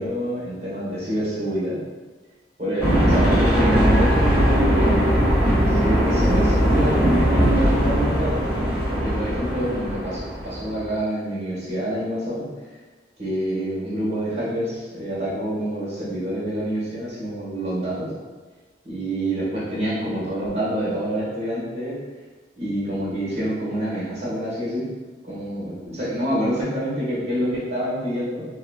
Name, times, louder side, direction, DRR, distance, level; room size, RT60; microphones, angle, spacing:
voice 1, 0.0-1.8 2.6-5.2 5.7-8.4 8.9-12.4 13.2-18.1 18.8-22.0 22.6-24.9 25.2-28.5, right 1 dB, 35° right, -8 dB, 1.3 m, -27 dB
sound 1, 2.8-10.9, equal, 10° right, 1.0 m, -20 dB
2.9 x 2.8 x 2.2 m, 1.3 s
head